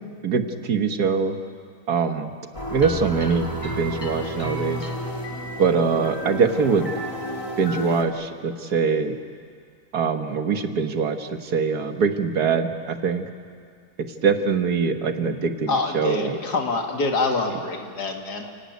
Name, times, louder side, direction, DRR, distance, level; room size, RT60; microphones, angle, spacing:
voice 1, 0.2-1.4 1.9-2.3 2.7-4.9 5.6-6.9 7.6-9.1 9.9-13.3 14.2-16.4, right 5 dB, 70° right, 7 dB, 1.9 m, -23 dB
sound 1, 2.5-8.0, equal, 20° left, 2.4 m, -31 dB
voice 2, 15.7-18.5, left 3 dB, 80° left, 3 dB, 2.7 m, -25 dB
29.0 x 18.0 x 9.5 m, 2.2 s
omnidirectional pair, 1.7 m